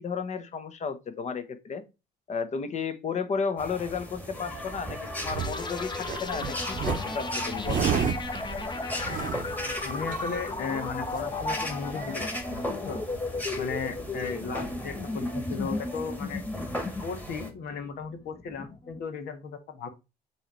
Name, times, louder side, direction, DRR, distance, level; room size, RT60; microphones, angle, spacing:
voice 1, 0.0-1.8 2.3-8.0, left 5 dB, 45° left, 1.2 m, -33 dB
sound 1, 3.6-17.5, equal, 10° left, 2.0 m, -37 dB
sound 2, 4.7-5.7 6.0-10.7 11.1-11.2 11.5-11.9 12.2-12.3 12.5-13.3 14.2-14.3, right 8 dB, 50° right, 0.8 m, -32 dB
sound 3, 5.4-19.0, left 3 dB, 25° left, 1.0 m, -35 dB
voice 2, 9.6-13.0 13.6-16.4 17.0-19.9, left 5 dB, 70° left, 1.7 m, -36 dB
7.8 x 3.4 x 4.4 m
cardioid pair, 110°, 17 cm